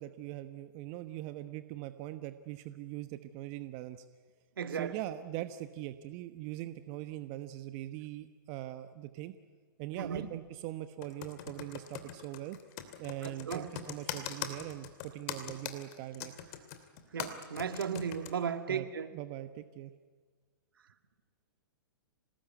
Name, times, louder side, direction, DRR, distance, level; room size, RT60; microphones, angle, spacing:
voice 1, 0.0-4.0 4.7-9.3 9.8-12.6 13.0-16.3 18.7-18.9 19.1-19.9, right 14 dB, 40° right, 11 dB, 1.1 m, -41 dB
voice 2, 4.6-4.9 10.0-10.3 13.2-13.7 17.1-19.1, right 7 dB, 70° right, 9 dB, 2.1 m, -35 dB
Computer keyboard, 11.0-18.3, left 10 dB, 40° left, 2.9 m, -41 dB
26.5 x 19.5 x 9.5 m, 1.5 s
figure-of-eight pair, 115°, 12 cm